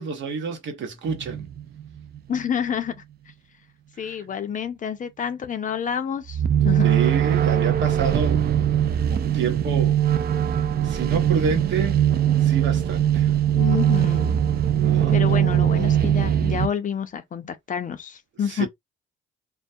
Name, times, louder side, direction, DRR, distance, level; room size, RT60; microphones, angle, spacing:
voice 1, 0.0-1.5 4.0-4.2 6.8-8.5 9.1-10.0 10.8-12.0 12.4-13.3 14.8-15.2 18.5-18.7, right 5 dB, 70° right, 0.8 m, -28 dB
sound 1, 1.1-2.4 6.3-16.7, right 10 dB, 50° right, 0.4 m, -21 dB
voice 2, 2.3-2.9 4.0-6.4 6.6-6.9 13.5-14.4 15.1-18.7, left 8 dB, 40° left, 0.5 m, -28 dB
2.2 x 2.2 x 2.6 m
cardioid pair, 90°, 20 cm